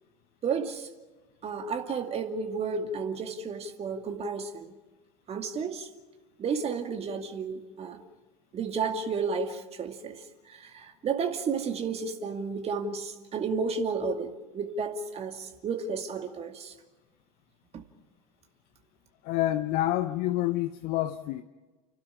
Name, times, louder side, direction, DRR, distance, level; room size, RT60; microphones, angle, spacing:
voice 1, 0.4-0.9 1.4-4.7 5.3-5.9 6.4-8.0 8.5-16.7 17.7-17.8, right 5 dB, 35° right, 2.3 m, -32 dB
voice 2, 19.2-21.4, left 14 dB, 50° left, 0.8 m, -28 dB
30.0 x 12.0 x 9.8 m
figure-of-eight pair, 75°, 19 cm